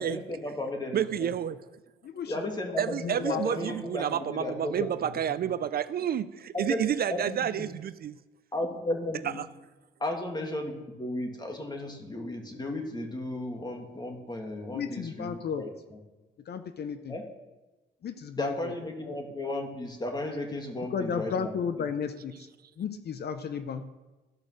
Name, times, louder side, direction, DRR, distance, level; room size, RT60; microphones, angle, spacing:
voice 1, 0.0-1.3 2.3-4.9 6.5-6.8 7.1-7.7 8.5-9.4 10.0-15.7 17.1-17.2 18.4-21.5, left 1 dB, 20° left, 2.0 m, -34 dB
voice 2, 0.9-1.6 2.8-8.2 9.2-9.5, right 9 dB, 50° right, 0.4 m, -30 dB
voice 3, 2.0-2.5 3.0-3.6 4.8-4.9 5.5-5.6 14.7-15.6 16.5-17.2 18.0-18.7 19.0-19.2 20.9-22.5 22.8-23.9, left 6 dB, 55° left, 0.7 m, -34 dB
13.5 x 5.1 x 6.4 m
cardioid pair, 90°, 20 cm